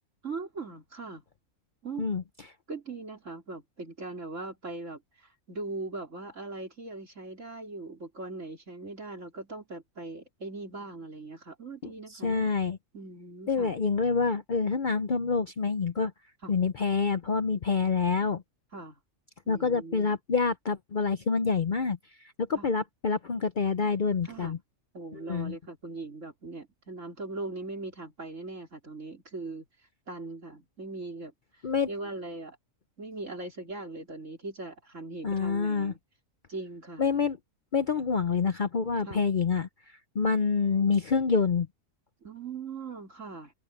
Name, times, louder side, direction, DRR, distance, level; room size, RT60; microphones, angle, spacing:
voice 1, 0.2-1.2 1.8-2.1 2.7-12.5 12.9-13.7 16.4-16.5 18.7-19.0 19.5-20.1 22.6-22.7 24.2-24.6 24.9-29.6 30.1-32.6 33.0-36.0 36.5-37.1 39.1-39.2 42.2-43.5, right 3 dB, 70° right, 4.2 m, -40 dB
voice 2, 11.8-12.8 13.5-16.1 16.5-18.4 19.5-22.0 22.4-24.6 25.1-25.5 31.6-31.9 35.2-35.9 37.0-37.4 37.7-41.7, left 5 dB, 45° left, 0.8 m, -27 dB
open air
omnidirectional pair, 1.3 m